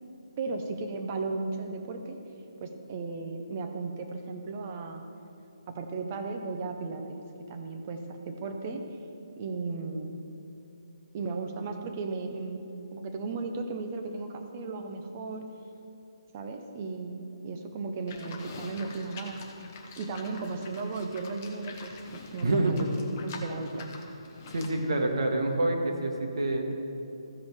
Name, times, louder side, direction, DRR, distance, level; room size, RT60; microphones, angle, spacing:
voice 1, 0.4-2.2 2.6-5.0 5.7-7.2 7.5-8.8 9.4-10.1 11.1-12.6 12.9-15.5 16.3-19.4 20.0-22.9 23.2-24.0, right 3 dB, 20° right, 5 dB, 0.5 m, -35 dB
Livestock farm animals working animals, 18.1-24.8, left 4 dB, 20° left, 0.7 m, -46 dB
voice 2, 22.4-22.9 24.5-26.7, right 2 dB, 60° right, 2 dB, 1.4 m, -27 dB
14.5 x 5.3 x 4.7 m, 2.9 s
hypercardioid pair, 175°, 3 cm